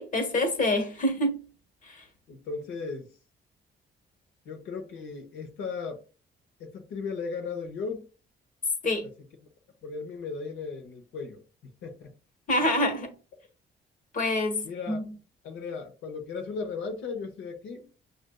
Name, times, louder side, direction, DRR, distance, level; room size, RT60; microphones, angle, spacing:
voice 1, 0.0-1.4 1.8-2.0 8.8-9.1 12.5-13.1 14.1-15.0, left 1 dB, 45° left, 1.2 m, -27 dB
voice 2, 2.3-3.1 4.4-6.0 6.6-8.0 9.8-11.4 11.8-12.1 14.6-15.0 15.4-17.8, left 4 dB, 90° left, 0.9 m, -36 dB
6.3 x 2.5 x 2.2 m
cardioid pair, 90°, 20 cm